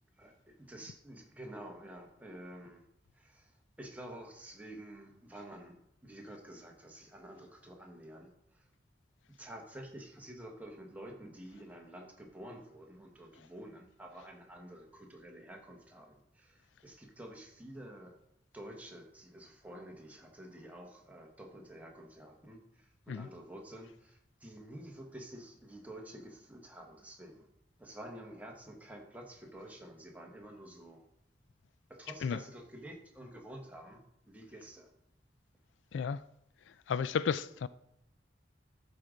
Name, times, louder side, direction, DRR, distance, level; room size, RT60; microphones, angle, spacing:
voice 1, 0.2-2.8 3.1-8.7 9.4-18.1 18.5-27.5 27.8-31.0 31.9-34.9, right 1 dB, 10° right, 1.2 m, -50 dB
voice 2, 36.9-37.7, left 6 dB, 80° left, 0.3 m, -32 dB
13.0 x 5.0 x 3.8 m
head